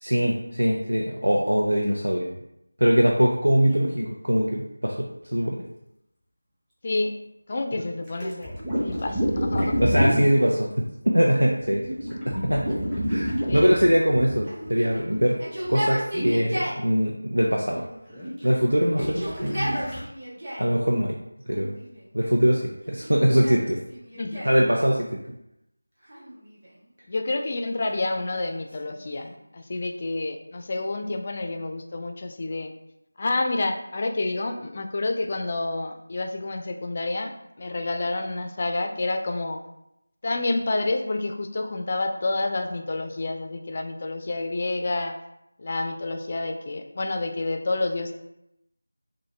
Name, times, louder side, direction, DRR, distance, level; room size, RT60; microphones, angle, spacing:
voice 1, 0.0-2.3 2.8-5.6 7.7-7.8 9.8-10.7 11.0-11.9 12.3-12.7 13.1-15.4 15.7-17.8 18.4-19.8 20.6-21.2 21.5-21.8 22.1-23.8 24.4-25.2, equal, 75° right, -1 dB, 0.6 m, -22 dB
voice 2, 6.8-7.1 7.5-8.5 8.8-9.8 13.5-13.7 24.1-24.5 27.1-32.7 33.2-39.6 40.2-45.2 45.6-48.1, left 2 dB, 30° left, 5 dB, 0.4 m, -29 dB
sound 1, 8.1-10.4 11.6-15.2 15.6-15.8 16.1-16.5 18.1-18.5 19.0-20.0, equal, 5° right, 0.7 m, -28 dB
Yell, 14.5-16.9 17.7-18.5 18.9-20.8 21.5-22.1 22.8-24.7 26.0-26.9 27.7-29.4, equal, 35° right, 1.1 m, -35 dB
6.1 x 2.2 x 3.2 m, 0.84 s
figure-of-eight pair, 170°, 0 cm